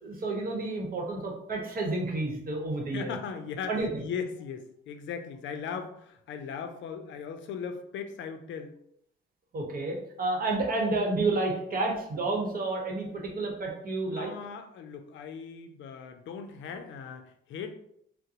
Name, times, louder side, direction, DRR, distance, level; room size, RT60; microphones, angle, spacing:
voice 1, 0.0-3.1 3.7-3.9 9.5-14.3, right 2 dB, 45° right, 0 dB, 0.9 m, -30 dB
voice 2, 2.9-8.7 14.1-17.7, left 6 dB, 70° left, 7 dB, 0.4 m, -38 dB
3.6 x 2.0 x 2.8 m, 0.72 s
cardioid pair, 90°, 20 cm